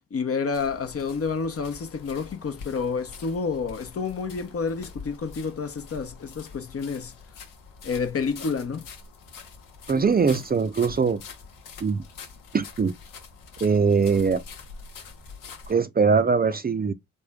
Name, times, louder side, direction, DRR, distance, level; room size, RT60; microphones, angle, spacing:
voice 1, 0.1-7.2 7.8-8.9, left 5 dB, 45° left, 0.8 m, -29 dB
sound 1, 0.5-15.7, left 5 dB, 80° left, 1.0 m, -45 dB
voice 2, 9.9-11.2 11.8-12.0 12.5-12.9 13.6-14.4 15.7-16.9, right 5 dB, 30° right, 0.5 m, -21 dB
3.5 x 2.1 x 3.5 m
supercardioid pair, 40°, 32 cm